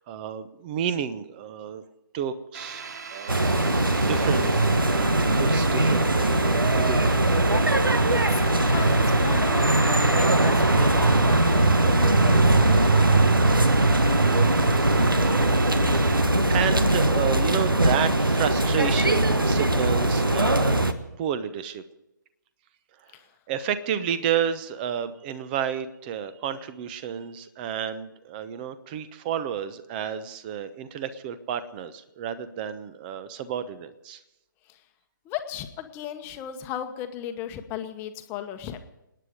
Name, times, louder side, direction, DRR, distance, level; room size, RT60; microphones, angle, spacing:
voice 1, 0.1-1.8 2.1-2.8 3.1-3.4 3.9-4.5 4.9-7.2 16.5-20.8 21.2-21.8 23.5-34.2, right 8 dB, 25° right, 14 dB, 0.9 m, -31 dB
sound 1, 2.5-16.2, right 5 dB, 55° right, 1.2 m, -37 dB
sound 2, 3.3-20.9, right 2 dB, 85° right, 1.2 m, -20 dB
voice 2, 8.1-13.0 23.1-23.3 34.7-34.8 35.2-38.8, left 10 dB, 20° left, 8 dB, 1.1 m, -36 dB
28.0 x 9.7 x 5.1 m, 0.90 s
figure-of-eight pair, 135°, 11 cm